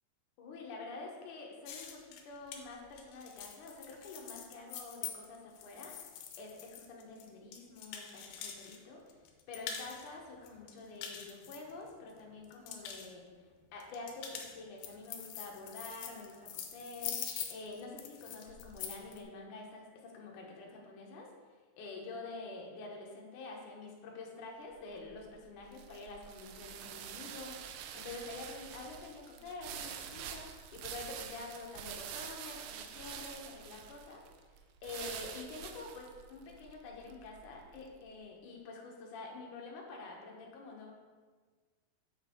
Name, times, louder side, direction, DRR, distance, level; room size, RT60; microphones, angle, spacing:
voice 1, 0.4-5.9 6.3-9.2 9.5-21.3 21.8-34.2 34.8-40.9, left 3 dB, 70° left, 0 dB, 2.3 m, -47 dB
sound 1, 1.7-8.8 9.1-10.1 10.5-12.1 12.4-13.1 13.8-19.2, left 8 dB, 85° left, 2.6 m, -44 dB
sound 2, 24.7-38.0, right 8 dB, 80° right, 2.1 m, -47 dB
6.7 x 6.3 x 4.4 m, 1.5 s
omnidirectional pair, 4.3 m